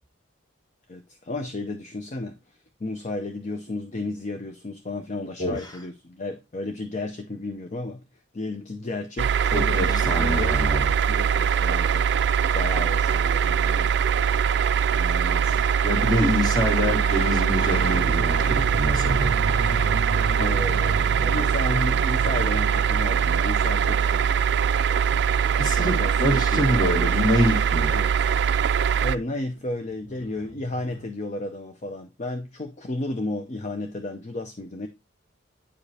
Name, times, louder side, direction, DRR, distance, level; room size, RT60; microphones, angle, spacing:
voice 1, 0.9-2.4 2.8-8.0 8.3-10.7 11.1-12.0 12.5-14.4 14.9-15.6 20.4-24.3 25.6-27.1 27.9-28.1 29.0-34.9, left 2 dB, 40° left, 0.6 m, -33 dB
voice 2, 5.4-5.7 9.5-10.9 15.5-19.4 25.6-27.9, equal, 20° left, 1.8 m, -25 dB
sound 1, 9.2-29.2, right 7 dB, 60° right, 0.3 m, -22 dB
sound 2, 16.5-26.9 29.0-29.1 29.2-31.0, right 1 dB, 75° left, 4.3 m, -35 dB
9.6 x 4.9 x 2.7 m
head